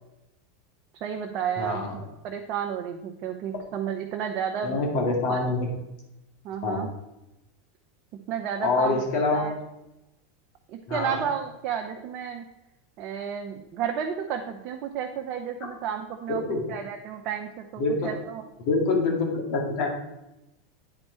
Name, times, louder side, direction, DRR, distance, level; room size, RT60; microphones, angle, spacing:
voice 1, 1.0-1.8 2.2-4.8 5.3-5.4 6.4-6.9 8.3-9.0 9.3-9.5 10.7-12.5 13.0-16.4 16.7-18.4, right 8 dB, 50° right, 3 dB, 0.6 m, -32 dB
voice 2, 1.6-2.0 4.6-5.7 6.6-6.8 8.6-9.5 10.9-11.2 16.3-16.6 17.8-18.1 18.6-19.9, left 3 dB, 60° left, 1 dB, 2.0 m, -25 dB
8.8 x 4.4 x 4.3 m, 0.93 s
hypercardioid pair, 100°, 0 cm